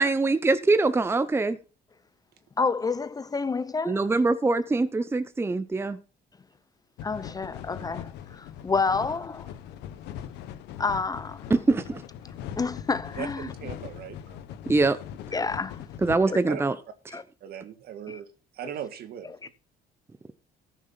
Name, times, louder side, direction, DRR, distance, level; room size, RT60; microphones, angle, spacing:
voice 1, 0.0-1.6 3.9-6.0 11.5-12.0 14.7-15.0 16.0-16.7, right 3 dB, 15° right, 0.7 m, -23 dB
voice 2, 2.6-4.1 7.0-9.5 10.8-11.6 12.6-13.5 15.3-15.8 16.3-16.4 17.1-17.2 18.1-18.2 19.3-19.4, left 4 dB, 20° left, 0.7 m, -29 dB
sound 1, 7.0-16.2, left 10 dB, 90° left, 1.2 m, -41 dB
voice 3, 13.2-14.4 16.5-16.6 17.4-19.3, right 9 dB, 65° right, 1.8 m, -39 dB
14.0 x 6.4 x 5.7 m
cardioid pair, 110°, 17 cm